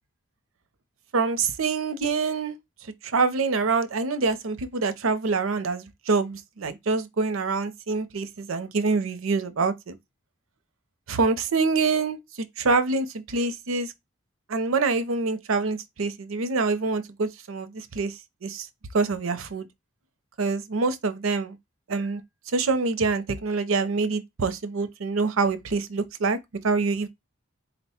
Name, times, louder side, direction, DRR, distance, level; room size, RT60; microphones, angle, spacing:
voice 1, 1.1-2.6 3.0-10.0 11.1-13.9 14.5-18.1 18.4-18.7 18.9-19.7 20.4-21.6 21.9-22.2 22.5-26.4 26.6-27.1, right 4 dB, 75° right, 0.6 m, -25 dB
4.1 x 2.1 x 4.1 m
head